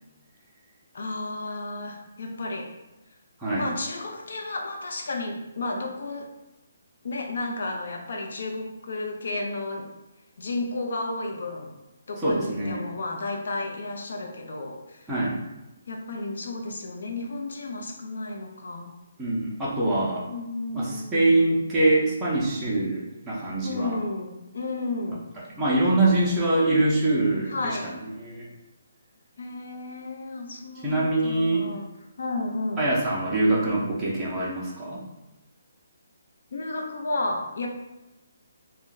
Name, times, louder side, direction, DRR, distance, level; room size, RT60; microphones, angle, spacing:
voice 1, 0.9-2.7 3.6-6.3 7.0-9.9 10.4-11.7 12.1-15.1 15.9-18.9 20.3-21.6 23.6-25.3 27.5-27.9 29.4-31.8 32.2-32.9 36.5-37.7, left 2 dB, 70° left, 2 dB, 0.6 m, -32 dB
voice 2, 12.2-12.8 15.1-15.4 19.2-20.2 20.7-24.0 25.6-28.5 30.8-31.7 32.8-35.0, right 2 dB, 10° right, -9 dB, 0.6 m, -24 dB
2.6 x 2.1 x 3.7 m, 1.0 s
hypercardioid pair, 160°, 0 cm